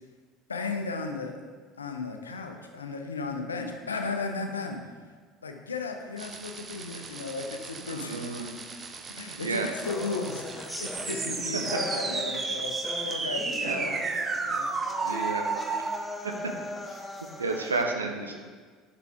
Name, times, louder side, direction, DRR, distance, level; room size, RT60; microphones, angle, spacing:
voice 1, 0.5-1.3 1.8-4.8 5.4-8.5 9.2-12.7 13.0-14.0 14.4-14.7, left 4 dB, 80° left, 5 dB, 0.6 m, -35 dB
sound 1, 6.2-16.0, right 4 dB, 30° right, 0.5 m, -33 dB
voice 2, 7.9-8.6 9.3-9.7 13.6-13.8 15.0-15.8 16.2-16.3 17.4-18.3, right 3 dB, 80° right, 3 dB, 0.6 m, -31 dB
sound 2, 9.8-17.8, left 2 dB, 10° left, 0.6 m, -39 dB
6.0 x 5.7 x 3.6 m, 1.5 s
figure-of-eight pair, 65°, 0 cm